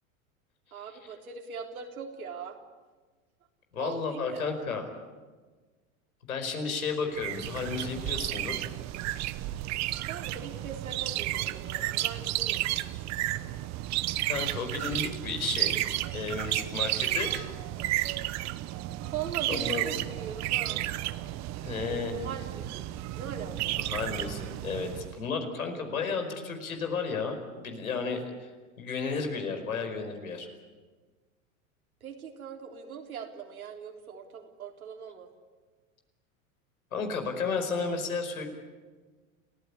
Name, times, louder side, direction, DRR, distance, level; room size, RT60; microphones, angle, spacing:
voice 1, 0.7-2.6 3.8-4.5 10.1-13.1 19.1-20.8 22.1-23.9 32.0-35.3, right 7 dB, 85° right, 2 dB, 3.8 m, -41 dB
voice 2, 3.7-4.9 6.3-8.6 14.3-15.9 16.1-17.5 19.5-20.1 21.6-22.2 23.9-28.5 28.8-30.5 36.9-38.5, left 5 dB, 85° left, 5 dB, 5.1 m, -33 dB
sound 1, 7.2-25.2, right 15 dB, 40° right, 1.1 m, -32 dB
30.0 x 15.0 x 9.8 m, 1.4 s
hypercardioid pair, 100°, 42 cm